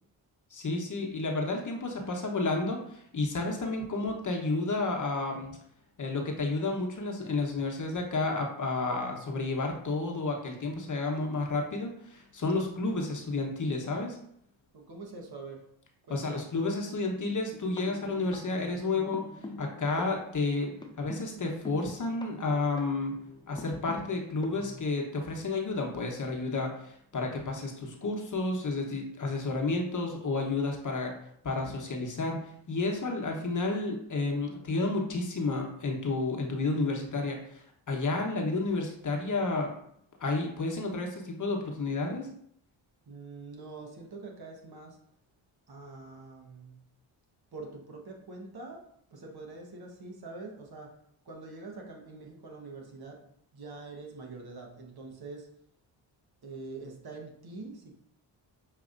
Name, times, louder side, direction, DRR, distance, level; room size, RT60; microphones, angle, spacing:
voice 1, 0.5-5.6 6.0-14.2 16.1-19.2 19.6-23.1 23.5-31.2 31.4-39.7 40.2-42.3, left 3 dB, 40° left, 1 dB, 1.0 m, -31 dB
voice 2, 14.7-15.6 16.1-16.4 43.1-45.0 45.7-46.8 47.5-48.8 49.1-50.9 51.2-53.2 53.5-55.5 56.4-57.9, right 3 dB, 50° right, 1 dB, 1.2 m, -44 dB
sound 1, 17.5-24.8, left 1 dB, 10° left, 0.4 m, -46 dB
6.1 x 2.8 x 2.5 m, 0.69 s
supercardioid pair, 55°, 48 cm